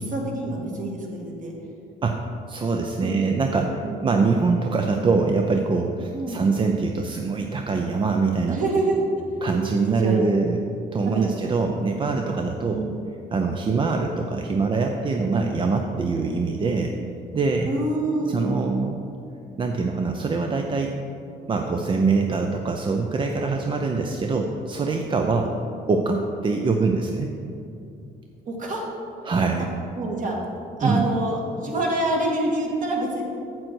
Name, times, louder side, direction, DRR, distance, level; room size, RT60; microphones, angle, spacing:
voice 1, 0.1-1.5 3.0-3.3 3.8-4.1 6.1-6.4 8.5-9.0 9.7-10.3 11.0-11.4 12.7-13.0 15.4-15.5 17.7-18.3 28.5-28.8 30.0-30.4 30.8-33.2, right 2 dB, 50° right, -1 dB, 1.8 m, -27 dB
voice 2, 2.5-8.6 9.4-10.6 10.9-12.8 13.3-16.9 17.3-17.7 18.3-19.0 19.6-20.9 21.5-25.5 25.9-27.3 29.2-29.7 30.8-31.0, right 4 dB, 30° right, 3 dB, 0.5 m, -23 dB
7.6 x 7.5 x 4.5 m, 2.6 s
cardioid pair, 110°, 17 cm